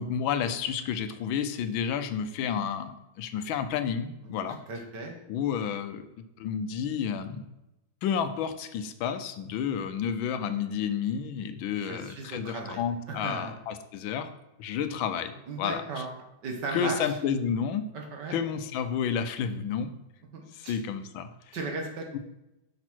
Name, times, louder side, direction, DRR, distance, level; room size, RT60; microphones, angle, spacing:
voice 1, 0.0-4.6 5.3-6.0 6.4-7.4 8.0-14.3 14.6-15.3 15.6-15.8 16.7-17.9 18.3-19.9 20.5-21.6 22.1-22.2, left 7 dB, 85° left, 9 dB, 1.4 m, -30 dB
voice 2, 4.7-5.1 11.7-12.8 13.1-13.5 15.5-16.1 16.4-17.2 17.9-18.4 20.3-20.8 21.5-22.1, right 3 dB, 60° right, 2 dB, 1.8 m, -36 dB
6.1 x 5.9 x 4.4 m, 0.92 s
omnidirectional pair, 2.1 m